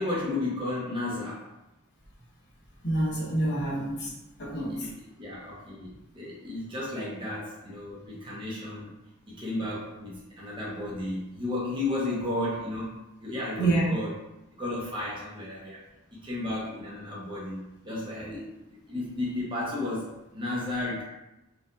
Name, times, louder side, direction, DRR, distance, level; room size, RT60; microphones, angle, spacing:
voice 1, 0.0-1.5 4.5-8.9 9.3-14.1 14.5-15.8 16.1-18.5 18.9-21.0, left 2 dB, 20° right, -7 dB, 1.0 m, -33 dB
voice 2, 2.8-4.1 4.4-4.9 13.6-13.9, right 2 dB, 50° left, -4 dB, 0.9 m, -27 dB
4.4 x 2.6 x 2.5 m, 0.92 s
head